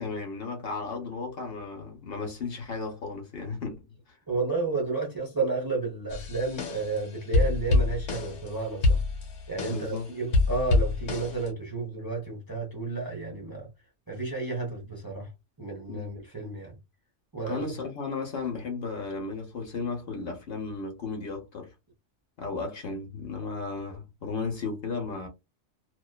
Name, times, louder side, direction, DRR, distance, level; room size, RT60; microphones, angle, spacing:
voice 1, 0.0-3.9 9.7-10.1 15.9-16.1 17.4-21.7 22.4-25.3, left 4 dB, 60° left, 0.9 m, -34 dB
voice 2, 4.3-9.0 9.5-13.7 14.1-15.3 15.6-16.7 17.3-17.6, right 4 dB, 25° right, 0.5 m, -32 dB
sound 1, 6.1-7.0 7.3-8.5 8.8-10.0 10.3-11.5, left 3 dB, 90° left, 1.2 m, -26 dB
2.4 x 2.3 x 2.2 m
omnidirectional pair, 1.2 m